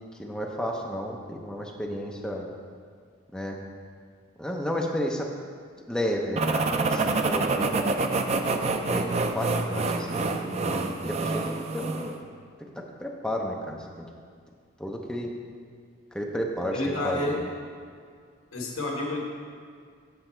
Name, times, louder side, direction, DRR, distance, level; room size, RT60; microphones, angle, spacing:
voice 1, 0.2-2.5 3.3-3.6 4.4-5.3 5.9-8.0 8.8-12.2 12.8-14.0 14.8-15.3 16.1-17.4, equal, 5° left, -1 dB, 0.6 m, -32 dB
sound 1, 6.4-12.2, right 3 dB, 30° right, 0.3 m, -27 dB
voice 2, 16.7-17.4 18.5-19.2, left 2 dB, 85° left, -1 dB, 1.5 m, -29 dB
8.0 x 6.2 x 4.4 m, 2.1 s
head